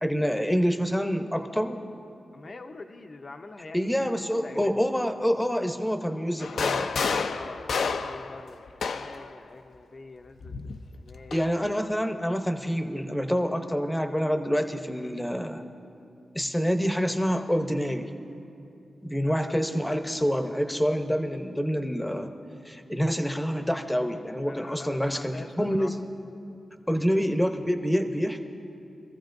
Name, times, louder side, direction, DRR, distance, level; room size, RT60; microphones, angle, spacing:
voice 1, 0.0-1.8 3.7-6.9 11.3-15.6 16.3-18.1 19.0-22.3 22.6-25.9 26.9-28.4, equal, 5° left, 6 dB, 0.8 m, -27 dB
voice 2, 2.3-4.8 7.4-7.7 8.0-10.6 10.9-11.4 14.9-15.2 19.2-19.6 24.5-26.0 26.9-27.0, left 3 dB, 45° left, 5 dB, 0.6 m, -45 dB
sound 1, 6.4-9.3 10.4-11.5, left 5 dB, 85° left, 0.5 m, -30 dB
24.5 x 14.5 x 2.6 m, 2.6 s
wide cardioid pair, 120°, 0 cm